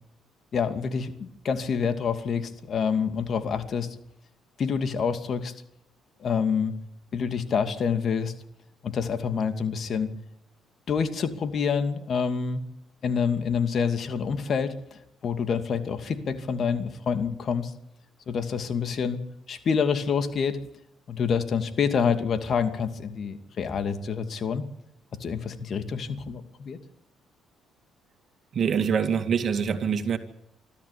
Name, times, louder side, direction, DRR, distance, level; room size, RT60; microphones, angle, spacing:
voice 1, 0.5-3.9 4.6-5.5 6.2-6.7 7.1-8.3 8.8-10.1 10.9-12.6 13.0-17.7 18.3-19.2 19.5-20.6 21.1-24.6 25.2-26.8, left 6 dB, 55° left, 9 dB, 2.5 m, -27 dB
voice 2, 28.5-30.2, right 7 dB, 55° right, 9 dB, 2.3 m, -25 dB
25.0 x 13.5 x 8.5 m, 0.80 s
supercardioid pair, 60°, 0 cm